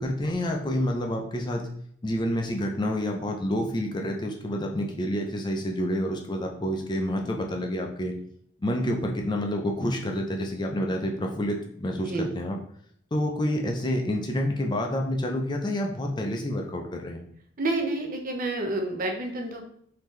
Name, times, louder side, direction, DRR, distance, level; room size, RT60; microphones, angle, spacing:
voice 1, 0.0-1.6 2.0-8.1 8.6-12.6 13.1-17.2, equal, 20° left, 2 dB, 0.4 m, -28 dB
voice 2, 17.6-19.6, right 2 dB, 45° right, 2 dB, 0.6 m, -29 dB
3.6 x 2.8 x 3.1 m, 0.66 s
head